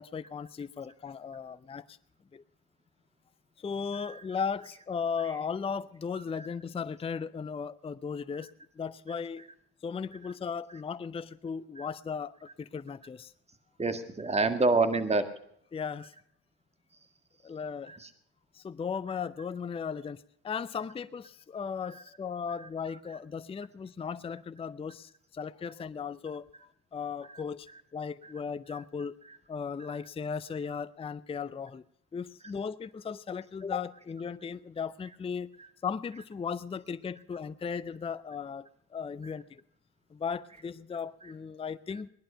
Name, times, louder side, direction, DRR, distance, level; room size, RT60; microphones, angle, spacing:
voice 1, 0.0-2.0 2.3-2.4 3.6-8.5 8.8-9.4 9.8-13.3 15.7-16.1 17.4-17.9 18.5-26.4 26.9-27.7 27.9-29.2 29.5-31.8 32.1-35.5 35.8-39.6 40.1-42.1, left 6 dB, 20° left, 14 dB, 0.5 m, -36 dB
voice 2, 13.8-15.2 17.9-18.1 28.7-28.8, right 3 dB, 20° right, 9 dB, 1.8 m, -27 dB
18.5 x 11.0 x 5.6 m, 0.70 s
supercardioid pair, 70°, 32 cm